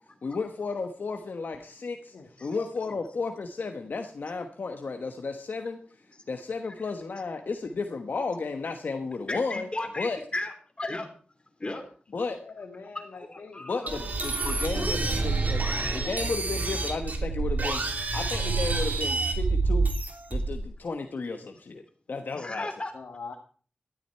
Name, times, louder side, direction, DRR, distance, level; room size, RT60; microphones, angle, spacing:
voice 1, 0.2-2.1 2.4-5.8 6.3-9.7 10.0-10.2 12.1-12.4 13.6-15.6 15.9-19.9 20.3-21.8 22.1-22.7, left 4 dB, 70° left, 5 dB, 1.2 m, -33 dB
voice 2, 2.1-3.0 12.3-13.9 22.9-23.3, left 4 dB, 85° left, 1 dB, 1.8 m, -44 dB
voice 3, 9.3-11.1 11.6-11.8 13.1-13.9 14.4-14.5 22.4-22.9, left 2 dB, 35° left, 6 dB, 3.1 m, -35 dB
sound 1, 13.9-20.7, right 3 dB, 60° right, 2.8 m, -28 dB
13.0 x 13.0 x 4.5 m, 0.42 s
wide cardioid pair, 70°, 3 cm